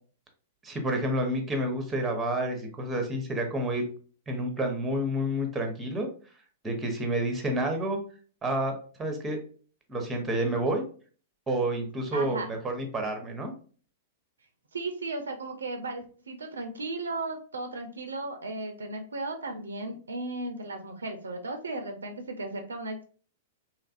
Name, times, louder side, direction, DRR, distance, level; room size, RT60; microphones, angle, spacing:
voice 1, 0.6-3.9 4.3-6.1 6.6-8.0 8.4-9.4 9.9-10.8 11.5-13.5, right 1 dB, 15° right, 4 dB, 0.8 m, -29 dB
voice 2, 12.1-12.5 14.7-23.0, right 2 dB, 80° right, 5 dB, 0.4 m, -35 dB
2.8 x 2.5 x 2.4 m, 0.41 s
figure-of-eight pair, 105°, 0 cm